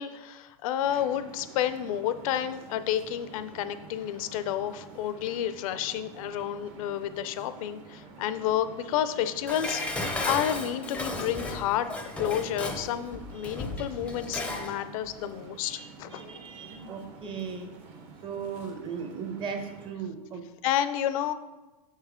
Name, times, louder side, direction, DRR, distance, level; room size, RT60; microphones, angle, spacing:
voice 1, 0.0-11.9 12.2-16.2 20.6-21.3, left 10 dB, 60° left, 12 dB, 0.5 m, -30 dB
sound 1, 0.8-19.9, right 4 dB, 50° right, 1.3 m, -49 dB
Dishes pots and pans, 9.5-14.8 15.1-15.2, left 2 dB, 5° left, 0.6 m, -34 dB
voice 2, 15.6-17.7 18.2-20.4, right 6 dB, 25° right, 5 dB, 0.8 m, -37 dB
6.8 x 5.6 x 3.6 m, 1.1 s
hypercardioid pair, 130°, 20 cm